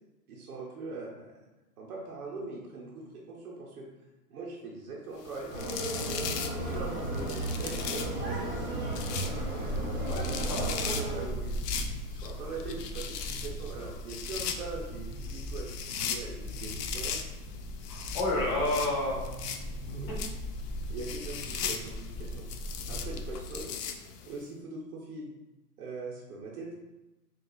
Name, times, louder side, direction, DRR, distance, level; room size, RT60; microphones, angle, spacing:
voice 1, 0.3-1.4 1.8-3.9 4.3-5.5 6.5-9.0 10.6-11.6 12.1-17.2 18.3-18.9 19.9-20.2 20.9-22.4 22.9-23.8 24.2-25.3 25.8-26.7, right 3 dB, 65° right, -3 dB, 0.8 m, -41 dB
sound 1, 5.2-24.4, left 7 dB, 80° left, 0.5 m, -39 dB
sound 2, 5.5-11.2, right 2 dB, 20° right, 0.8 m, -34 dB
sound 3, 6.6-23.6, equal, ahead, 0.4 m, -40 dB
voice 2, 10.0-10.7 17.9-19.2, left 2 dB, 30° left, -4 dB, 0.7 m, -30 dB
3.8 x 2.4 x 2.3 m, 1.1 s
hypercardioid pair, 160°, 48 cm